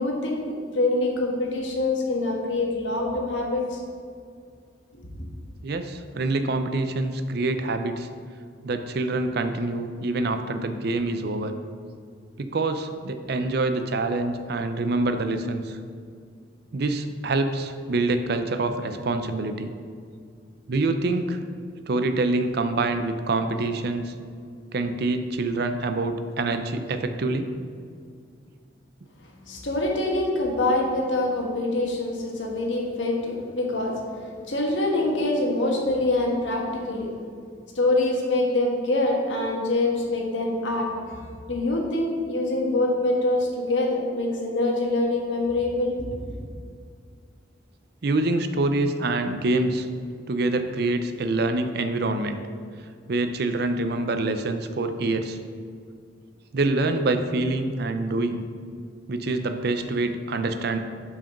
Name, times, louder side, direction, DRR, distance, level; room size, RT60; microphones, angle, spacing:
voice 1, 0.0-3.8 4.9-5.1 29.2-37.1 37.7-45.9, left 2 dB, 90° left, 0 dB, 1.4 m, -25 dB
voice 2, 5.6-8.1 8.6-11.5 12.4-15.8 16.7-19.7 20.7-21.4 21.9-24.1 24.7-27.5 48.0-49.9 50.3-52.4 53.1-55.4 56.5-58.4 59.1-60.8, right 2 dB, 60° right, 8 dB, 0.5 m, -26 dB
5.9 x 4.8 x 5.8 m, 2.2 s
head